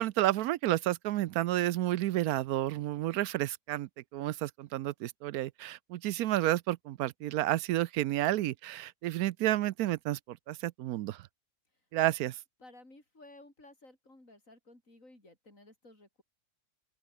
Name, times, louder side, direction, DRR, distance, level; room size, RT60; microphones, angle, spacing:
voice 1, 0.0-11.2 11.9-12.3, right 14 dB, 75° right, 1.0 m, -31 dB
voice 2, 12.6-16.2, left 2 dB, 55° left, 8.4 m, -55 dB
open air
omnidirectional pair, 1.6 m